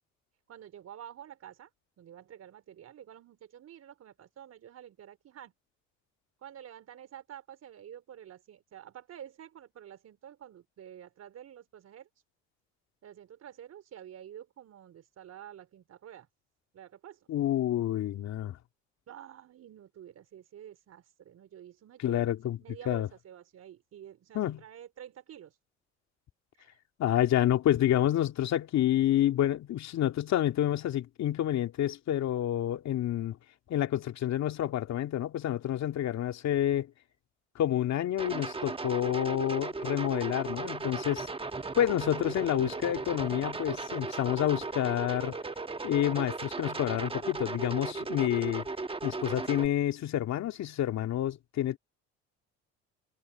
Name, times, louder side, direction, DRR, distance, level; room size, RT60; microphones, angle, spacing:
voice 1, 0.5-1.7 2.0-5.5 6.4-12.1 13.0-16.3 16.7-17.3 19.1-22.3 22.6-25.6 26.6-26.8, right 10 dB, 55° right, 4.0 m, -49 dB
voice 2, 17.3-18.6 22.0-22.6 22.9-23.1 24.3-24.6 27.0-33.4 33.7-36.9 37.6-41.3 41.7-45.4 45.8-48.6 49.0-51.8, left 12 dB, 60° left, 2.4 m, -28 dB
sound 1, 38.2-49.7, right 3 dB, 20° right, 1.2 m, -36 dB
supercardioid pair, 75°, 30 cm